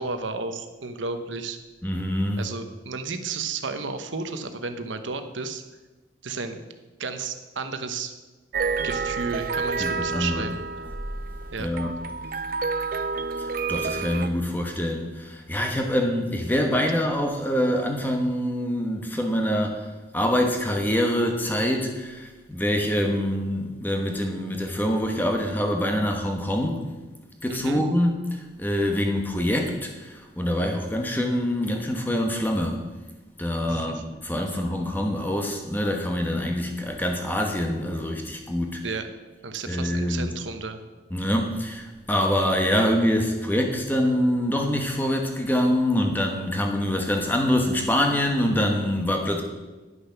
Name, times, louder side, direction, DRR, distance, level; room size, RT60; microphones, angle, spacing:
voice 1, 0.0-1.6 2.4-5.6 6.2-6.6 7.0-8.1 8.8-10.6 11.5-11.7 27.5-27.8 33.7-34.0 38.8-39.1 39.4-40.8, right 4 dB, 90° right, 8 dB, 1.0 m, -32 dB
voice 2, 1.8-2.4 9.8-10.4 11.6-11.9 13.4-19.8 20.1-26.9 27.4-32.8 33.4-38.8 39.7-40.3 41.1-49.4, equal, 10° left, 2 dB, 1.2 m, -25 dB
sound 1, 8.5-14.3, right 4 dB, 50° right, 0.4 m, -29 dB
11.0 x 6.7 x 5.8 m, 1.2 s
head